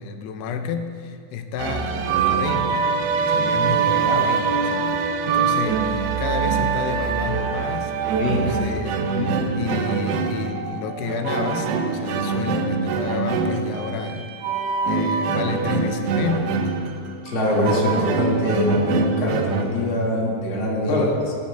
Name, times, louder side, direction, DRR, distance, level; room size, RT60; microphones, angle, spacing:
voice 1, 0.0-2.9 3.2-5.0 5.2-14.3 14.9-16.7 17.6-17.7 20.8-21.2, left 6 dB, 90° left, 6 dB, 2.8 m, -31 dB
sound 1, 1.6-19.7, right 5 dB, 90° right, 2.9 m, -24 dB
voice 2, 17.2-21.3, left 1 dB, 40° left, -4 dB, 2.0 m, -23 dB
20.0 x 9.9 x 2.3 m, 2.2 s
omnidirectional pair, 4.7 m